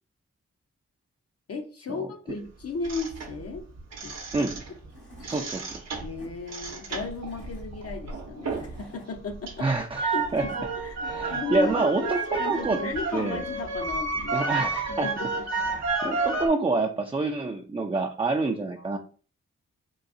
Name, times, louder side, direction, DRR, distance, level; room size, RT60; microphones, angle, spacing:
voice 1, 1.5-3.7 4.0-4.5 6.0-9.7 10.0-14.4 14.9-15.4 16.1-16.3 18.8-19.0, left 4 dB, 55° left, 4 dB, 0.7 m, -35 dB
sound 1, 2.8-4.9 5.1-8.8 9.2-16.5, right 4 dB, 60° right, 0.8 m, -31 dB
Tools / Wood, 4.5-4.6 4.9-5.5 5.9-6.3 7.0-7.6 8.2-9.1 9.8-10.6, left 1 dB, 85° left, 1.7 m, -50 dB
voice 2, 5.2-5.9 9.6-10.5 11.0-12.8 13.1-13.4 14.3-15.1 15.5-19.0, right 3 dB, 20° right, 2 dB, 0.4 m, -27 dB
3.9 x 2.3 x 2.6 m, 0.39 s
supercardioid pair, 45°, 29 cm